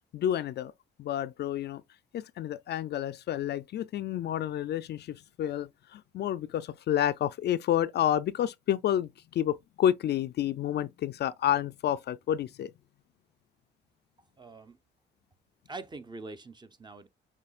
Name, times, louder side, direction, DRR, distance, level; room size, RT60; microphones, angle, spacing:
voice 1, 0.1-0.7 1.0-1.8 2.1-12.7, left 11 dB, 55° left, 0.4 m, -30 dB
voice 2, 14.4-14.8 15.7-17.1, right 3 dB, 20° right, 0.7 m, -44 dB
6.9 x 2.7 x 2.4 m
cardioid pair, 90°, 20 cm